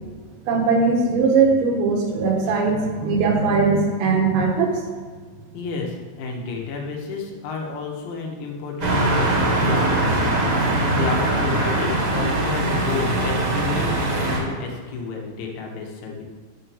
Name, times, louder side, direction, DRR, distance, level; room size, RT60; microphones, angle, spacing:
voice 1, 0.5-4.8, right 4 dB, 85° right, 0 dB, 3.9 m, -20 dB
voice 2, 5.5-16.2, left 4 dB, 85° left, 0 dB, 3.7 m, -31 dB
sound 1, 8.8-14.4, right 1 dB, 45° right, 1.9 m, -21 dB
11.0 x 4.6 x 7.0 m, 1.5 s
omnidirectional pair, 5.1 m